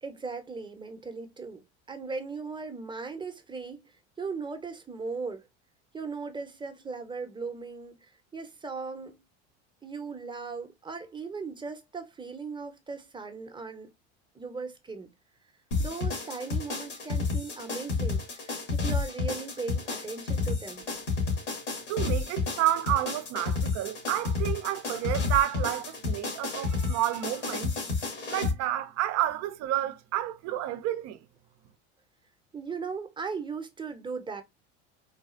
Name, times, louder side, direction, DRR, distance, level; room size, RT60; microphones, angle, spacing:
voice 1, 0.0-5.5 5.9-9.2 9.8-13.9 14.3-15.1 15.8-20.9 32.5-34.4, right 4 dB, 15° right, 0.8 m, -38 dB
sound 1, 15.7-28.5, left 4 dB, 90° left, 2.3 m, -30 dB
voice 2, 21.9-27.7 28.3-31.2, right 13 dB, 50° right, 0.6 m, -30 dB
4.0 x 2.4 x 2.4 m
hypercardioid pair, 90°, 35 cm